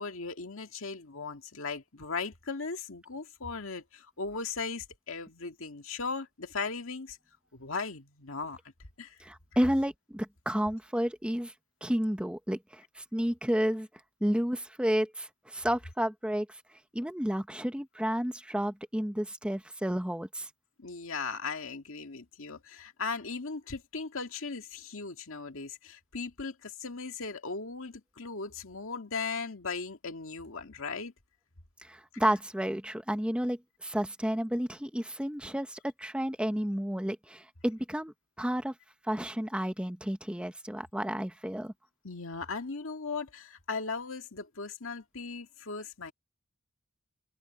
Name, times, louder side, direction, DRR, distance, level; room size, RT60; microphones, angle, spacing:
voice 1, 0.0-7.2 7.5-8.6 9.0-9.2 20.8-31.1 42.0-46.1, left 4 dB, 75° left, 2.1 m, -38 dB
voice 2, 9.2-11.5 11.8-13.9 14.2-16.6 16.9-20.5 31.8-38.7 39.1-41.7, equal, 5° right, 0.9 m, -31 dB
head